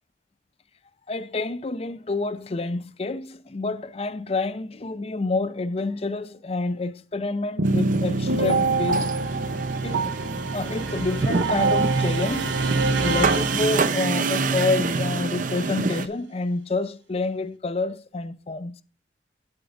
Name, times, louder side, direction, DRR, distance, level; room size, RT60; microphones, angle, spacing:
voice 1, 1.1-9.1 9.8-10.1 10.5-12.6 13.0-18.8, left 3 dB, 35° left, 0.5 m, -28 dB
sound 1, 7.6-16.1, right 4 dB, 45° right, 0.6 m, -27 dB
sound 2, 7.6-14.4, right 3 dB, 90° right, 1.0 m, -25 dB
9.0 x 8.0 x 3.9 m
head